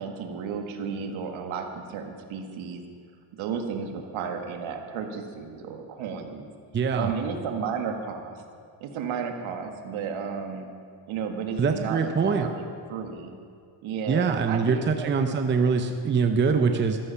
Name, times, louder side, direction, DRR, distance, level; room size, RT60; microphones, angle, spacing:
voice 1, 0.0-2.8 3.4-6.5 6.9-8.4 8.8-10.6 11.1-13.3 13.8-15.4, right 6 dB, 70° right, 4 dB, 1.8 m, -33 dB
voice 2, 6.7-7.1 11.6-12.5 14.1-17.0, right 5 dB, 25° right, 6 dB, 0.7 m, -23 dB
14.5 x 13.5 x 5.7 m, 2.3 s
cardioid pair, 135°, 49 cm